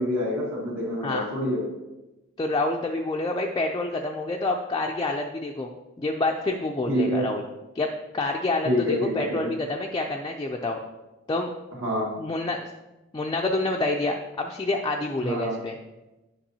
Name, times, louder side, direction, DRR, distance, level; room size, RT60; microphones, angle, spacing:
voice 1, 0.0-1.6 6.9-7.2 8.6-9.5 11.8-12.1 15.2-15.6, equal, 70° right, -5 dB, 2.2 m, -26 dB
voice 2, 2.4-5.7 6.0-7.4 7.7-7.9 8.1-10.8 11.3-11.5 12.2-12.6 13.1-15.8, left 2 dB, 20° left, 1 dB, 0.3 m, -27 dB
8.7 x 5.2 x 2.8 m, 1.0 s
head